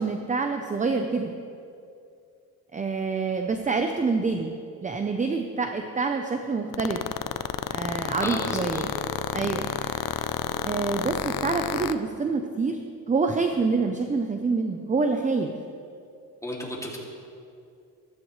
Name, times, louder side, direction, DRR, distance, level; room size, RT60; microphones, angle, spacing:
voice 1, 0.0-1.3 2.7-4.5 4.8-7.0 7.7-8.9 9.3-10.2 10.6-12.8 13.1-15.5, right 4 dB, 20° right, 5 dB, 0.7 m, -27 dB
sound 1, 6.7-11.9, left 11 dB, 65° left, 0.6 m, -29 dB
voice 2, 8.2-8.8 16.4-17.0, left 1 dB, 10° left, -3 dB, 2.5 m, -33 dB
15.0 x 14.0 x 3.2 m, 2.5 s
cardioid pair, 100°, 37 cm